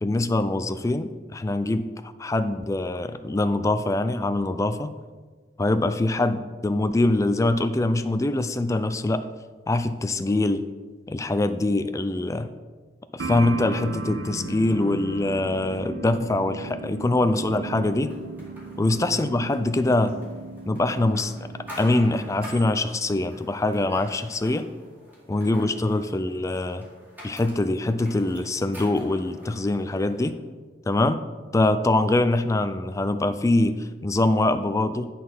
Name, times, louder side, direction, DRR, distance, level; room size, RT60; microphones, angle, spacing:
voice 1, 0.0-4.9 5.6-9.3 9.7-10.7 11.1-12.5 13.1-18.1 18.8-20.2 20.7-21.5 21.8-24.7 25.3-26.8 27.2-30.4 30.9-31.2 31.5-35.1, left 2 dB, 15° left, 11 dB, 0.3 m, -24 dB
sound 1, 13.2-22.7, right 3 dB, 80° right, 0.7 m, -37 dB
sound 2, 18.1-30.3, equal, 10° right, 2.3 m, -46 dB
9.5 x 4.2 x 5.4 m, 1.4 s
head